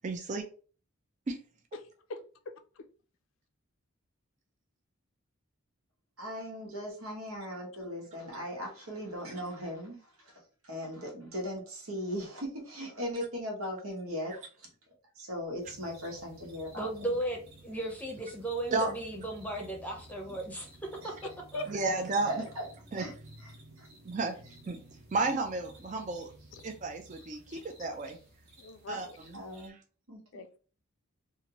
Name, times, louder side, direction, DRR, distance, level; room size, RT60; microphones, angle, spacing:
voice 1, 0.0-0.4 18.7-18.9 21.7-22.4 22.9-23.1 24.0-24.4 24.7-24.8 25.1-26.3 26.6-28.2 28.9-29.1 29.6-29.8, right 3 dB, 35° right, 3 dB, 0.4 m, -32 dB
voice 2, 6.2-14.7 15.1-17.2 18.4-18.7 20.3-20.4 21.0-21.2 22.2-22.6 22.9-23.1 23.4-23.9 24.4-24.6 29.3-29.8 30.1-30.2, equal, 85° right, -1 dB, 1.2 m, -39 dB
sound 1, 15.6-29.7, right 2 dB, 60° right, 0.9 m, -54 dB
voice 3, 16.7-21.2 21.5-21.6, right 1 dB, 5° left, 1 dB, 0.6 m, -36 dB
voice 4, 21.5-22.0 26.5-26.7 27.5-27.6 28.6-29.2 30.3-30.6, left 2 dB, 65° left, 9 dB, 0.4 m, -42 dB
2.8 x 2.5 x 2.9 m, 0.38 s
head